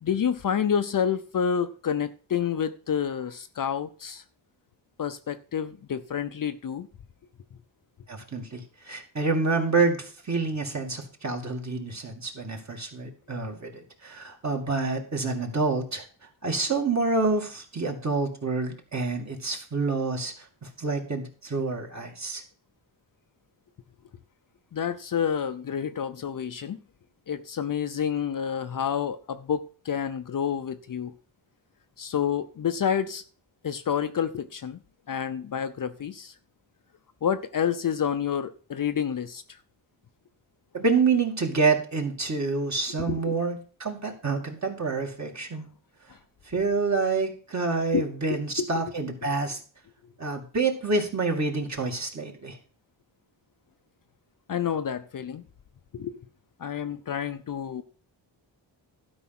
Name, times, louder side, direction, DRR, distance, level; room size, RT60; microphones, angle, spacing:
voice 1, 0.0-4.2 5.0-6.9 13.4-13.5 24.7-26.8 27.3-31.1 32.0-33.2 33.6-34.8 35.1-36.3 37.2-39.6 43.0-43.4 46.1-46.2 47.9-48.7 54.5-55.4 55.9-56.2 56.6-57.8, left 8 dB, 45° left, 0.7 m, -29 dB
voice 2, 8.1-16.0 16.4-20.3 20.6-22.4 40.7-45.7 46.5-49.6 50.2-52.6, right 4 dB, 35° right, 2.4 m, -27 dB
12.0 x 5.3 x 6.0 m
cardioid pair, 105°, 47 cm